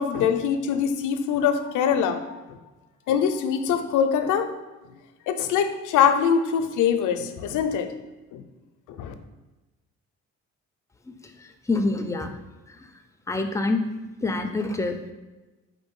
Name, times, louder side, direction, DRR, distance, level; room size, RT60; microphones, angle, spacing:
voice 1, 0.0-2.6 3.1-4.5 5.3-7.9 8.3-8.4 8.9-9.1, left 7 dB, 80° left, 8 dB, 0.5 m, -23 dB
voice 2, 11.7-12.3 13.3-13.8 14.2-15.1, left 2 dB, 10° left, 6 dB, 0.4 m, -25 dB
4.4 x 2.6 x 4.6 m, 1.1 s
cardioid pair, 90°, 30 cm